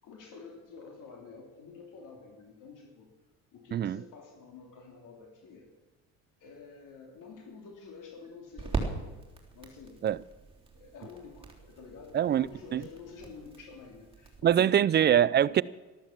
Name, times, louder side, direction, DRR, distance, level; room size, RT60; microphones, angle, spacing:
voice 1, 0.0-3.1 3.5-5.7 6.4-9.1 9.5-10.0 10.7-14.9, left 4 dB, 60° left, 3.1 m, -49 dB
sound 1, 6.5-14.4, right 4 dB, 15° right, 3.3 m, -41 dB
voice 2, 12.1-12.5 12.7-12.8 14.4-15.6, right 10 dB, 30° right, 0.4 m, -23 dB
13.0 x 12.5 x 7.4 m
supercardioid pair, 85°, 36 cm